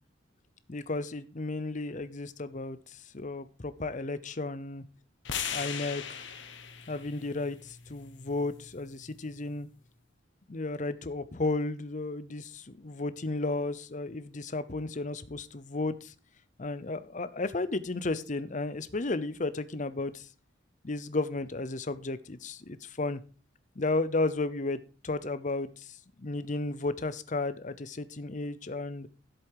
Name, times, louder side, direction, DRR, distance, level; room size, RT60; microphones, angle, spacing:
voice 1, 0.7-4.8 5.5-6.2 6.9-9.7 10.5-16.1 16.6-20.3 20.8-23.2 23.8-29.1, left 2 dB, 40° left, 0.7 m, -33 dB
sound 1, 5.2-9.4, left 7 dB, 65° left, 1.4 m, -40 dB
11.0 x 8.0 x 4.8 m
head